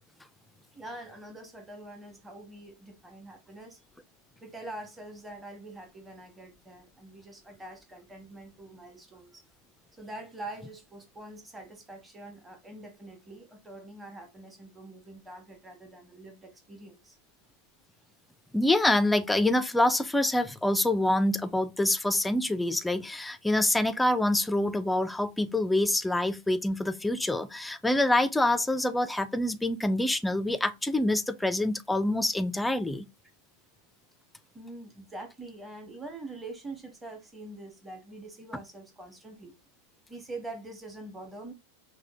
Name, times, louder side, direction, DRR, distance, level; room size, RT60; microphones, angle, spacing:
voice 1, 0.7-3.8 4.4-9.4 10.0-17.2 34.5-39.5 40.1-41.5, right 2 dB, 10° right, 0.8 m, -44 dB
voice 2, 18.5-33.1, left 1 dB, 5° left, 0.4 m, -26 dB
5.9 x 2.1 x 2.7 m
figure-of-eight pair, 90°, 0 cm